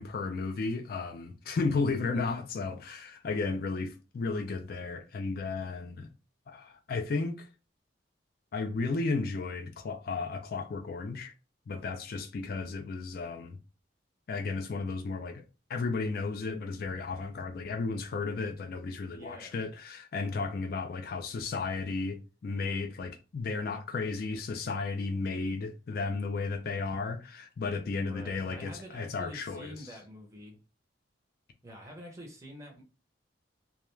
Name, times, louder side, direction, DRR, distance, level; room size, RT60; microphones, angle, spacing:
voice 1, 0.0-6.1 6.5-7.5 8.5-11.3 11.7-13.6 14.3-15.4 15.7-29.7, left 4 dB, 55° left, 0.4 m, -34 dB
voice 2, 19.0-19.6 28.1-30.6 31.6-32.8, equal, 15° right, 0.6 m, -47 dB
2.3 x 2.1 x 3.0 m
head